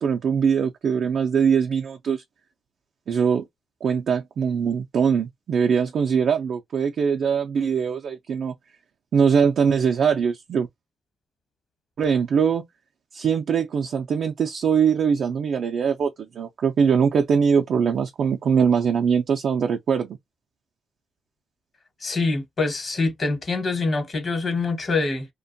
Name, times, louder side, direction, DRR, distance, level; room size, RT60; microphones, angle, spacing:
voice 1, 0.0-2.2 3.1-3.4 3.8-8.5 9.1-10.7 12.0-12.6 13.1-20.2, right 6 dB, 60° right, 0.4 m, -22 dB
voice 2, 22.0-25.3, left 3 dB, 40° left, 1.1 m, -25 dB
2.5 x 2.2 x 2.6 m
cardioid pair, 90°, 0 cm